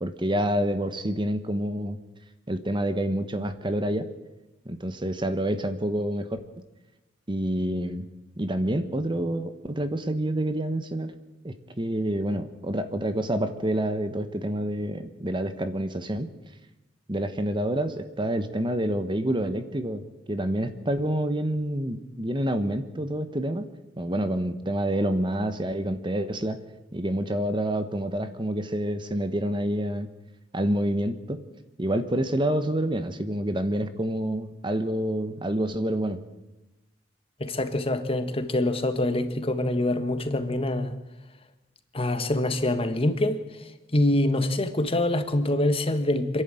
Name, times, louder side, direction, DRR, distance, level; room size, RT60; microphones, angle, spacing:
voice 1, 0.0-2.0 2.5-4.1 4.6-6.4 7.3-8.1 8.4-11.1 11.4-16.3 17.1-20.0 20.3-23.7 24.0-26.6 26.9-30.1 30.5-31.4 31.8-36.2, right 1 dB, 25° right, 1.3 m, -28 dB
voice 2, 37.4-40.9 41.9-43.4 43.9-46.4, left 1 dB, 30° left, 1.5 m, -25 dB
26.5 x 11.5 x 9.1 m
head